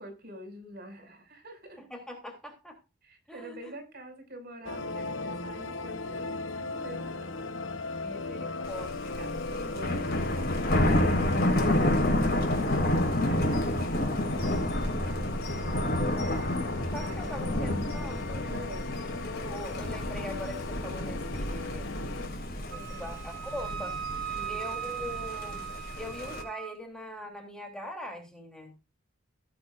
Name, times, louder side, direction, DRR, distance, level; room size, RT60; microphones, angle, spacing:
voice 1, 0.0-1.8 3.0-7.3 8.4-8.6 9.0-12.9 13.2-15.8 16.2-16.6 16.8-17.5 18.4-19.0 22.7-23.2 24.3-24.6, right 1 dB, 50° right, 5 dB, 6.2 m, -47 dB
voice 2, 1.8-2.8 3.3-3.7 7.9-9.2 16.9-18.5 19.0-21.9 22.7-24.0 24.5-25.7 26.0-28.7, equal, 5° left, 3 dB, 3.4 m, -42 dB
sound 1, 4.6-22.3, left 3 dB, 70° left, 1.0 m, -38 dB
Thunder, 8.6-26.4, left 1 dB, 50° left, 4.6 m, -30 dB
Wind instrument woodwind instrument, 22.7-26.7, right 9 dB, 75° right, 4.0 m, -38 dB
17.0 x 9.8 x 2.6 m, 0.27 s
head